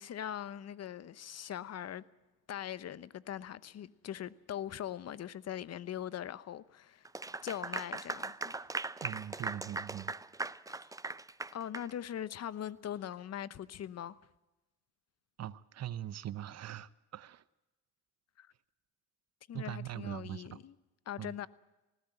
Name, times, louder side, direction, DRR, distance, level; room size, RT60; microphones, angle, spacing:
voice 1, 0.0-2.0 2.5-7.1 7.4-8.6 11.5-14.2 18.4-18.5 19.5-20.7 21.1-21.5, left 10 dB, 55° left, 0.9 m, -41 dB
Clapping / Applause, 7.0-11.9, right 3 dB, 10° right, 0.6 m, -39 dB
voice 2, 9.0-10.2 15.4-17.4 19.5-20.6 21.2-21.4, right 11 dB, 60° right, 0.9 m, -42 dB
19.5 x 15.5 x 9.1 m
cardioid pair, 90°, 30 cm